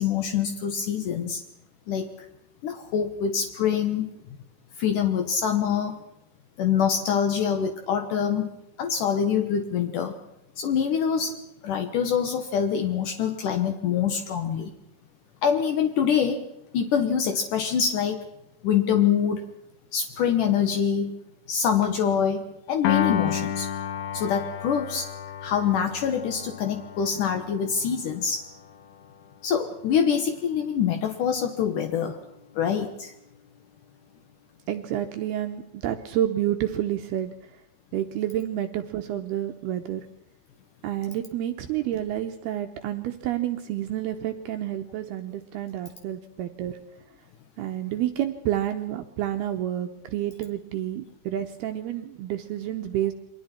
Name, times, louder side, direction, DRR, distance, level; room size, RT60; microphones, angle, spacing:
voice 1, 0.0-1.4 1.9-2.3 2.6-4.1 4.8-6.0 6.6-8.5 8.8-10.1 10.6-11.4 11.6-14.7 15.4-16.4 16.7-18.2 18.6-19.4 19.9-21.2 21.5-23.7 24.1-25.1 25.4-28.4 29.4-32.2 32.5-33.1, left 7 dB, 85° left, 6 dB, 1.8 m, -25 dB
Piano, 22.8-29.2, left 9 dB, 60° left, 3.2 m, -31 dB
voice 2, 34.7-37.3 37.9-40.1 40.8-46.8 47.6-53.1, right 12 dB, 75° right, 6 dB, 2.4 m, -29 dB
29.5 x 23.0 x 4.4 m, 0.85 s
omnidirectional pair, 5.7 m